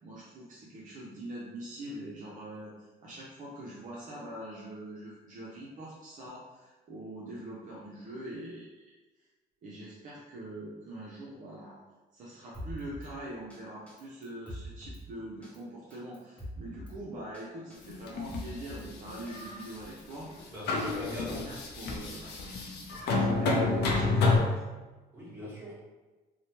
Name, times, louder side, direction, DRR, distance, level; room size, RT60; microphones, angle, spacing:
voice 1, 0.0-8.9 9.6-11.8 12.1-20.5 20.9-22.3 23.1-24.6, right 1 dB, 50° right, -5 dB, 0.6 m, -43 dB
Drum kit, 12.5-13.1 13.5-13.6 13.9-15.0 15.4-15.6 15.9-17.0 17.3-17.4 17.7-18.9 19.3-20.2, equal, 5° left, 0.7 m, -43 dB
sound 1, 17.9-18.5 19.1-19.8 20.3-20.4 20.7-24.4, left 3 dB, 75° left, 0.5 m, -29 dB
voice 2, 20.5-21.5 25.1-25.8, equal, 10° right, -8 dB, 1.2 m, -40 dB
2.8 x 2.1 x 2.9 m, 1.2 s
cardioid pair, 110°, 17 cm